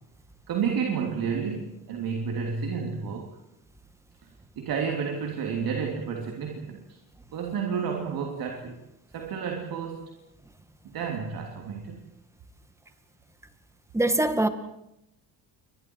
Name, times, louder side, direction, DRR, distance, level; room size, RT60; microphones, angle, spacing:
voice 1, 0.5-3.4 4.6-7.0 7.3-8.8 9.1-10.1 10.8-12.1, right 6 dB, 60° right, 2 dB, 3.3 m, -31 dB
voice 2, 13.9-14.5, right 2 dB, 5° right, 9 dB, 1.9 m, -22 dB
29.0 x 25.0 x 4.8 m, 0.82 s
cardioid pair, 135°, 40 cm